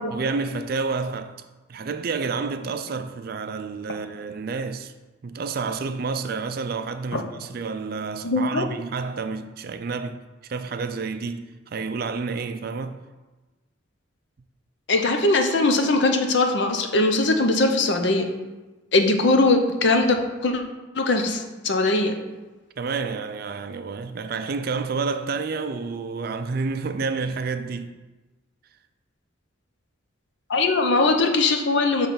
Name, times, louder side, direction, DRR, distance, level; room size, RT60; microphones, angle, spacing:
voice 1, 0.1-1.3 1.7-4.9 5.2-10.2 10.5-13.0 22.8-27.9, right 4 dB, 50° right, 0.4 m, -29 dB
voice 2, 8.2-8.7 14.9-18.3 18.9-20.6 20.9-22.1 30.5-32.1, left 2 dB, 60° left, 0.6 m, -21 dB
6.9 x 3.2 x 5.7 m
head